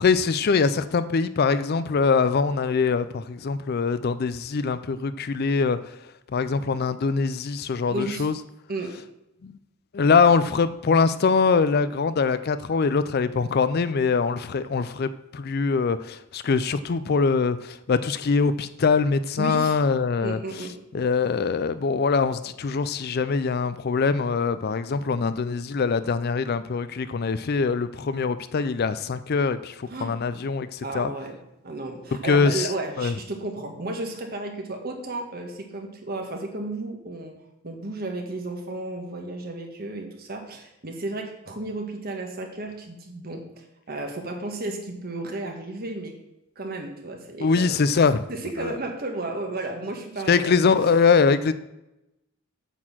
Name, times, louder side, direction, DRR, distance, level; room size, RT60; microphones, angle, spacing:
voice 1, 0.0-5.8 6.3-8.3 9.4-9.6 9.9-20.4 20.9-31.1 32.2-32.7 33.0-33.1 47.4-48.2 50.3-51.5, left 5 dB, 50° left, 0.4 m, -23 dB
voice 2, 7.9-8.3 8.7-9.0 19.4-19.8 20.2-20.7 29.9-30.2 30.8-31.4 31.6-37.3 37.6-46.2 46.6-47.8 48.3-50.6, right 2 dB, 45° right, 1.5 m, -33 dB
9.0 x 4.3 x 7.3 m
head